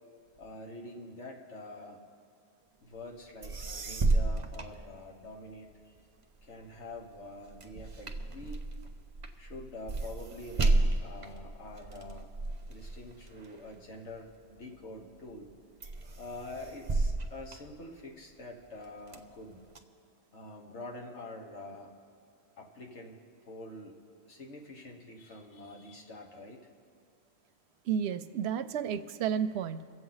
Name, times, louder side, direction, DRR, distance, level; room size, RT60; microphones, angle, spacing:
voice 1, 0.4-2.0 2.8-6.0 6.4-8.6 9.4-12.3 12.7-15.5 16.2-19.7 20.3-21.9 22.6-23.2 23.5-24.0 24.3-26.7, left 2 dB, 85° left, 1 dB, 1.7 m, -46 dB
sound 1, 3.1-3.2 3.4-5.5 6.0-14.6 15.1-15.5 15.8-18.3 18.8-19.8, right 2 dB, 35° right, 0.6 m, -33 dB
voice 2, 27.8-29.8, right 8 dB, 75° right, 11 dB, 0.8 m, -32 dB
23.5 x 7.9 x 4.0 m, 2.2 s
omnidirectional pair, 1.1 m